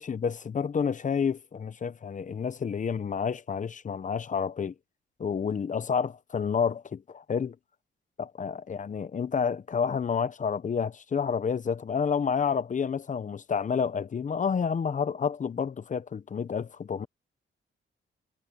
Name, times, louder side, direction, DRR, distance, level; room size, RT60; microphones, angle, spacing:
voice 1, 0.0-4.7 5.2-7.6 8.2-17.1, left 6 dB, 40° left, 0.8 m, -29 dB
cardioid pair, 100°, 21 cm